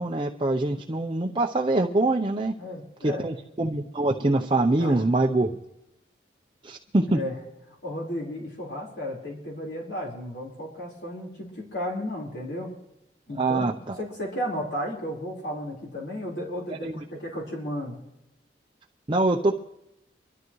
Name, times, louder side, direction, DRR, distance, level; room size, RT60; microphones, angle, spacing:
voice 1, 0.0-2.5 3.0-5.5 6.6-7.2 13.3-14.0 16.8-17.0 19.1-19.6, right 2 dB, 30° right, 1 dB, 0.7 m, -24 dB
voice 2, 2.6-3.3 4.8-5.0 7.1-7.4 7.8-12.7 13.3-18.0, equal, 70° left, -2 dB, 4.3 m, -34 dB
24.0 x 13.0 x 3.1 m, 0.88 s
head